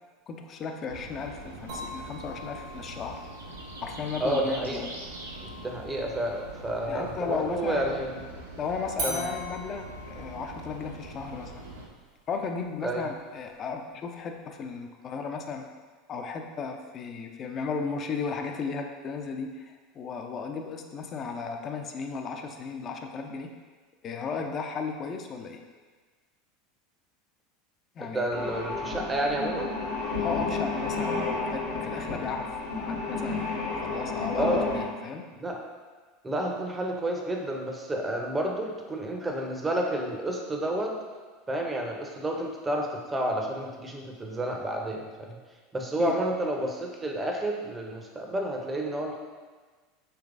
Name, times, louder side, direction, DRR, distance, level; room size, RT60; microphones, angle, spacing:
voice 1, 0.3-3.2 3.8-4.9 6.9-7.9 8.6-11.6 12.3-15.7 16.1-23.5 24.0-25.6 28.0-28.3 30.2-35.3 46.0-46.1, left 5 dB, 40° left, 4 dB, 0.3 m, -35 dB
sound 1, 0.9-11.9, right 1 dB, 85° right, 0.4 m, -43 dB
sound 2, 1.7-7.3 9.0-14.0, equal, 65° right, 1.1 m, -43 dB
voice 2, 4.2-4.9 5.4-8.2 9.0-9.2 12.8-13.0 28.0-29.8 34.4-34.7 35.4-35.6 36.2-40.9 41.5-45.4 45.7-49.2, right 1 dB, 20° right, 1 dB, 0.5 m, -30 dB
sound 3, 28.3-34.8, left 3 dB, 80° left, 0.9 m, -31 dB
3.4 x 3.0 x 2.4 m, 1.4 s
hypercardioid pair, 80°, 0 cm